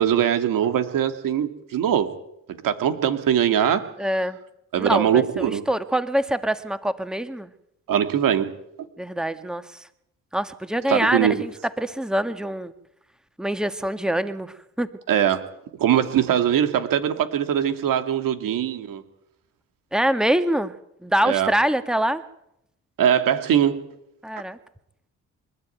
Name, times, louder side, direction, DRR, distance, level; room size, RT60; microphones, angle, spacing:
voice 1, 0.0-2.1 2.6-3.9 4.7-5.6 7.9-8.5 10.9-11.4 15.1-15.4 15.8-19.0 21.2-21.5 23.0-23.8, right 9 dB, 80° right, 8 dB, 2.4 m, -21 dB
voice 2, 4.0-4.4 4.8-7.5 9.0-9.8 10.3-11.5 11.8-12.7 13.4-14.9 19.9-20.7 21.0-22.2 24.2-24.6, right 1 dB, ahead, 10 dB, 1.8 m, -24 dB
26.0 x 12.5 x 9.3 m, 0.79 s
supercardioid pair, 65°, 33 cm